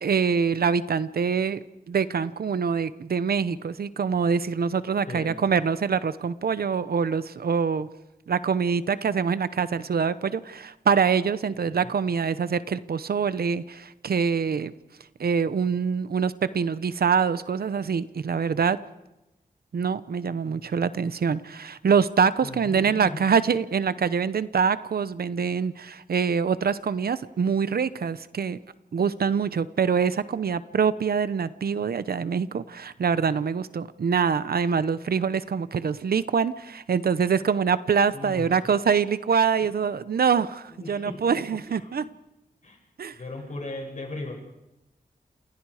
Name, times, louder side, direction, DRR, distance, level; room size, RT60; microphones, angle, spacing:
voice 1, 0.0-1.6 1.9-7.9 8.3-14.7 15.2-18.8 19.7-28.6 28.9-42.0 43.0-43.2, right 6 dB, 80° right, 14 dB, 0.9 m, -25 dB
voice 2, 5.1-5.4 11.5-11.9 22.4-23.2 38.1-38.5 40.7-41.9 42.6-42.8 43.1-44.3, left 2 dB, 55° left, 0 dB, 7.5 m, -37 dB
29.0 x 28.5 x 5.0 m, 0.94 s
wide cardioid pair, 105°, 16 cm